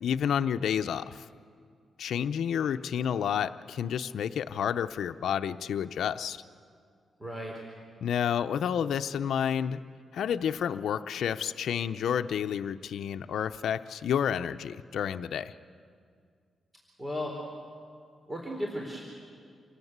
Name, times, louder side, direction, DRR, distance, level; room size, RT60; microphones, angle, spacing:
voice 1, 0.0-1.3 2.0-6.4 8.0-9.8 10.1-15.5, left 8 dB, 80° left, 9 dB, 0.7 m, -30 dB
voice 2, 7.2-7.5 17.0-17.3 18.3-19.0, equal, 20° right, 0 dB, 4.1 m, -35 dB
28.0 x 18.5 x 8.1 m, 2.2 s
cardioid pair, 85°, 0 cm